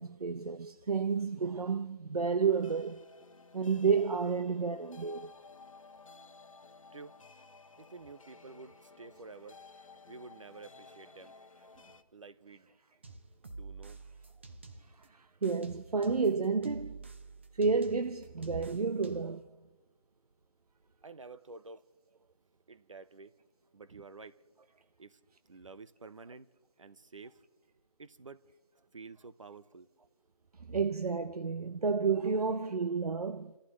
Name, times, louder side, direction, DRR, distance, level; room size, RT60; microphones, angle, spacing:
voice 1, 0.0-3.1 3.5-5.3 15.0-17.0 17.5-19.5 30.6-33.6, right 5 dB, 85° right, 0.7 m, -31 dB
sound 1, 2.5-12.0, left 4 dB, 60° left, 1.2 m, -55 dB
voice 2, 7.8-9.6 10.1-11.3 12.1-12.7 13.4-14.0 21.0-21.8 22.7-23.3 23.7-24.4 25.0-25.2 25.5-26.5 26.8-27.4 28.0-28.4 28.9-29.9, right 4 dB, 55° right, 1.0 m, -50 dB
sound 2, 13.0-15.1 15.4-19.4, right 3 dB, 20° right, 0.6 m, -49 dB
29.5 x 14.5 x 3.2 m
figure-of-eight pair, 170°, 19 cm